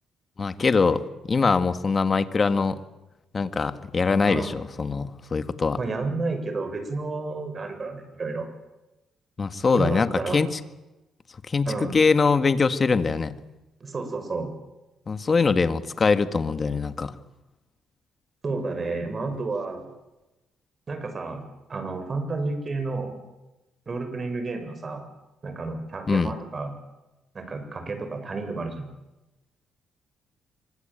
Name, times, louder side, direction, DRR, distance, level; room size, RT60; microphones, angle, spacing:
voice 1, 0.4-2.8 3.3-5.8 9.4-10.6 11.5-13.4 15.1-17.1 26.1-26.4, left 4 dB, 35° left, 10 dB, 2.0 m, -23 dB
voice 2, 4.3-4.6 5.8-8.5 9.6-10.4 11.6-12.0 13.8-14.5 18.4-19.9 20.9-21.4 21.7-23.1 23.9-25.0 25.4-26.7 27.3-28.9, right 3 dB, 35° right, 7 dB, 7.4 m, -31 dB
26.0 x 25.0 x 9.2 m, 1.0 s
cardioid pair, 90°, 0 cm